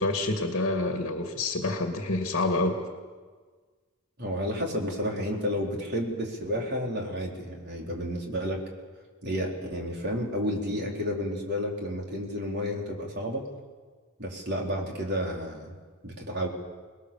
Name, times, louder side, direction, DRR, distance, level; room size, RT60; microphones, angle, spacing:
voice 1, 0.0-2.8, left 2 dB, 55° left, 4 dB, 2.0 m, -27 dB
voice 2, 4.2-8.6 9.2-13.5 14.2-15.7 16.0-16.5, equal, 50° right, 0 dB, 4.2 m, -31 dB
26.0 x 20.5 x 7.2 m, 1.5 s
head